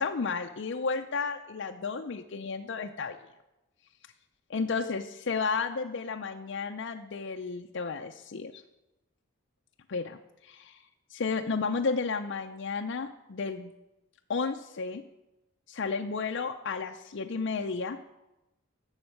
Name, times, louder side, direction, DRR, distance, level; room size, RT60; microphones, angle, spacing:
voice 1, 0.0-3.2 4.5-8.6 9.9-10.8 11.1-13.7 14.3-15.0 15.7-18.0, left 4 dB, 60° left, 4 dB, 0.5 m, -32 dB
11.5 x 7.2 x 6.6 m, 0.97 s
head